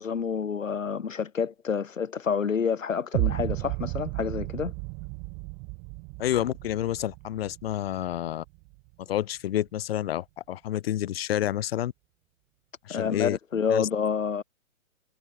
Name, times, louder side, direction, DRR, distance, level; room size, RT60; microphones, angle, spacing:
voice 1, 0.0-4.7 12.9-14.4, left 6 dB, 75° left, 2.9 m, -28 dB
sound 1, 3.1-9.1, right 36 dB, 30° right, 3.7 m, -34 dB
voice 2, 6.2-8.4 9.0-11.9 12.8-13.4 13.7-13.9, left 12 dB, 50° left, 3.5 m, -29 dB
hypercardioid pair, 130°, 39 cm